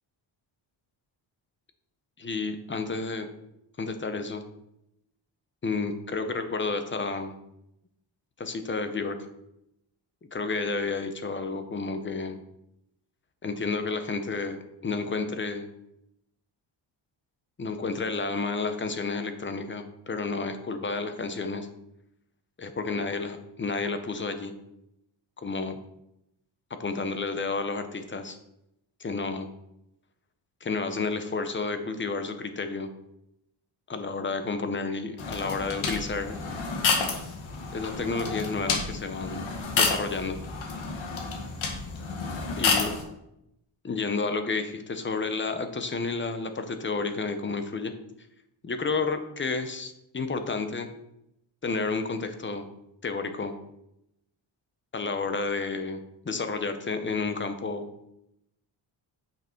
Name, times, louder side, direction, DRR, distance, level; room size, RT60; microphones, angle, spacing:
voice 1, 2.2-3.3 3.8-4.4 5.6-7.4 8.4-9.2 10.3-12.4 13.4-15.7 17.6-21.7 22.6-24.5 25.4-25.8 26.7-28.4 29.0-29.5 30.6-32.9 33.9-36.3 37.7-39.5 39.8-40.4 42.6-42.9 43.8-47.9 48.6-50.9 51.6-52.7 53.0-53.5 54.9-56.0 56.2-57.9, left 4 dB, 25° left, 8 dB, 0.8 m, -31 dB
sound 1, 35.2-43.0, left 4 dB, 70° left, 1.8 m, -30 dB
8.9 x 5.8 x 4.5 m, 0.83 s
wide cardioid pair, 155°, 47 cm